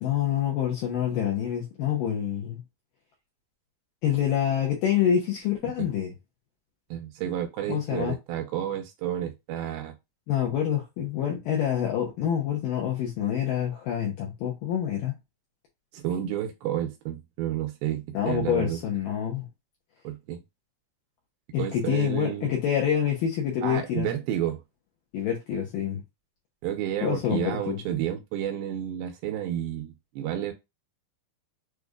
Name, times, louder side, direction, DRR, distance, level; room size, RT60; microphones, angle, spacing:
voice 1, 0.0-2.6 4.0-6.1 7.7-8.2 10.3-15.2 18.1-19.5 21.5-24.1 25.1-26.0 27.0-27.8, left 9 dB, 70° left, 2.2 m, -27 dB
voice 2, 6.9-10.0 15.9-18.8 20.0-20.4 21.6-22.5 23.6-24.6 26.6-30.5, right 11 dB, 80° right, 2.4 m, -31 dB
6.4 x 2.5 x 2.3 m
omnidirectional pair, 4.5 m